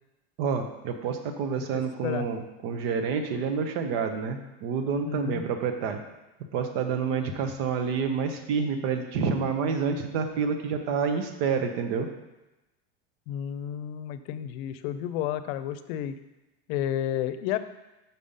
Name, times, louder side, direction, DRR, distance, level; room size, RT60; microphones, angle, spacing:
voice 1, 0.4-6.0 6.5-12.1, right 5 dB, 70° right, 6 dB, 1.0 m, -28 dB
voice 2, 1.7-2.3 5.0-5.4 13.3-16.1 16.7-17.6, left 11 dB, 70° left, 11 dB, 0.6 m, -31 dB
5.8 x 5.2 x 5.5 m, 1.0 s
supercardioid pair, 150°, 32 cm